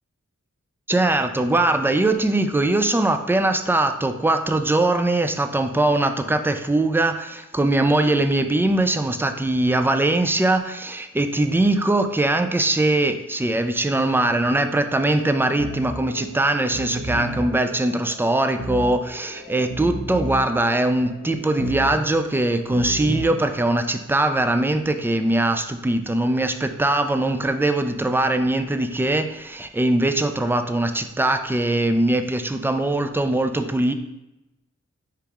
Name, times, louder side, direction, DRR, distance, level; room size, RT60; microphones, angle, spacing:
voice 1, 0.9-33.9, right 2 dB, 10° right, 8 dB, 0.3 m, -21 dB
sound 1, 14.5-23.2, equal, 75° right, 1.6 m, -34 dB
4.7 x 3.1 x 3.5 m, 0.97 s
wide cardioid pair, 50°, 29 cm